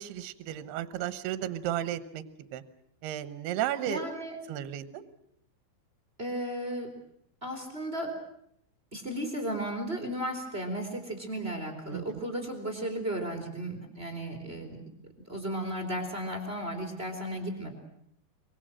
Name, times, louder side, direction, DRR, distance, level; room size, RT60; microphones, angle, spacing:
voice 1, 0.0-2.2 2.5-2.6 3.0-4.1 4.5-5.0 11.9-12.0, right 11 dB, 75° right, 13 dB, 3.0 m, -33 dB
voice 2, 3.9-4.4 6.2-6.9 7.4-8.1 8.9-14.9 15.2-17.7, right 1 dB, 15° right, 4 dB, 3.2 m, -34 dB
24.0 x 23.5 x 7.7 m, 0.72 s
omnidirectional pair, 5.0 m